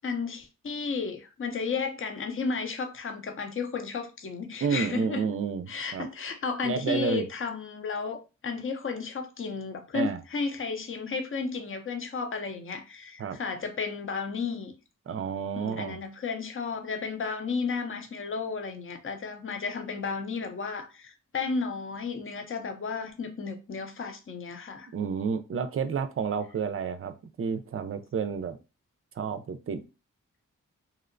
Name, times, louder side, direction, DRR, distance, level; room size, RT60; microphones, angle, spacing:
voice 1, 0.0-5.3 5.7-14.7 15.6-24.9, left 5 dB, 40° left, 0.6 m, -33 dB
voice 2, 4.6-5.7 5.9-6.1 6.6-7.2 9.9-10.2 13.2-13.4 15.1-16.0 24.9-28.6 29.2-29.8, right 6 dB, 40° right, 0.4 m, -30 dB
2.7 x 2.0 x 2.5 m
cardioid pair, 40°, 34 cm